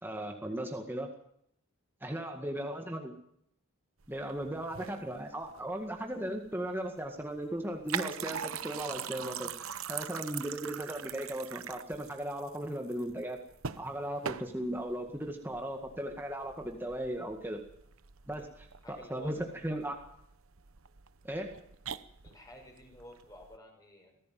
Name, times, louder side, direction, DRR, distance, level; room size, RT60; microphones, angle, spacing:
voice 1, 0.0-1.1 2.0-3.1 4.1-13.4 13.8-17.6 18.3-18.5 18.9-20.0 21.2-21.6, right 1 dB, 10° right, 2 dB, 1.9 m, -37 dB
voice 2, 2.0-2.8 18.4-18.5 18.8-19.5 22.2-24.2, left 1 dB, 15° left, 3 dB, 5.5 m, -53 dB
sound 1, 4.0-23.6, right 8 dB, 75° right, 1.0 m, -43 dB
23.5 x 15.5 x 7.7 m, 0.73 s
head